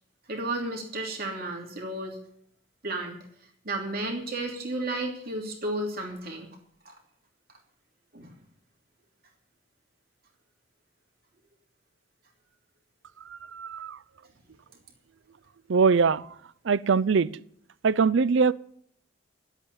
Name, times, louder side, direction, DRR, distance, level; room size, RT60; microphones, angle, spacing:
voice 1, 0.3-2.2 2.8-3.2 3.6-6.5 6.8-6.9 8.1-8.3, right 2 dB, 45° right, 2.9 m, -32 dB
voice 2, 13.6-14.0 15.7-16.2 16.7-17.3 17.8-18.5, right 5 dB, 65° right, 0.5 m, -22 dB
12.5 x 8.2 x 8.6 m
head